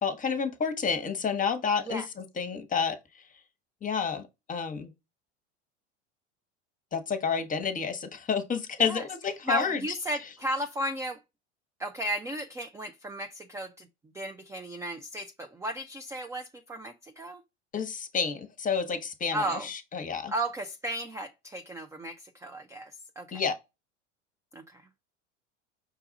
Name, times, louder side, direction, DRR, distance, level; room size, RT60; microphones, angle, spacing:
voice 1, 0.0-3.0 3.8-4.9 6.9-9.8 17.7-20.3 23.3-23.5, left 6 dB, 20° left, 1.0 m, -30 dB
voice 2, 9.5-11.2 11.8-13.9 14.1-17.4 19.3-19.7 20.3-23.5 24.5-24.8, right 1 dB, 10° right, 0.4 m, -34 dB
5.9 x 2.3 x 3.9 m
hypercardioid pair, 80°, 35 cm